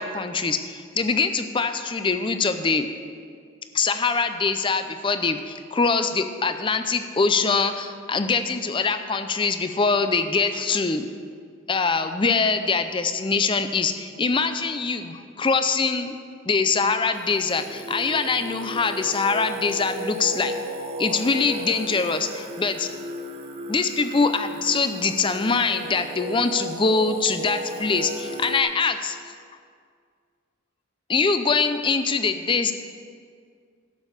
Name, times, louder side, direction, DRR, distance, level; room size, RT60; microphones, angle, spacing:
voice 1, 0.0-2.9 3.7-11.1 11.7-16.2 16.4-20.5 21.0-22.9 23.7-29.3 31.1-32.7, left 4 dB, 25° left, 9 dB, 0.5 m, -23 dB
Singing, 17.1-28.6, equal, 30° right, 0.7 m, -35 dB
12.0 x 6.4 x 6.5 m, 2.1 s
head